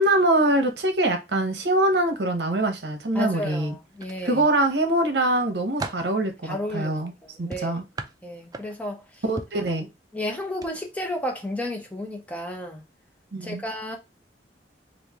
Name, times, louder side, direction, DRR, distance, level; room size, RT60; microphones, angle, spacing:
voice 1, 0.0-3.8 4.2-7.1 7.4-7.8 9.3-9.9 13.3-13.6, right 1 dB, 70° right, 0.9 m, -23 dB
voice 2, 3.1-4.4 6.4-7.0 7.2-7.8 8.2-9.0 9.6-9.7 10.1-12.8 13.4-14.0, left 1 dB, 10° left, 0.7 m, -32 dB
sound 1, 4.0-4.8 5.3-6.1 7.5-8.9 9.4-9.7 10.5-10.7 11.1-11.3, right 3 dB, 20° right, 0.3 m, -37 dB
3.1 x 2.5 x 3.4 m
head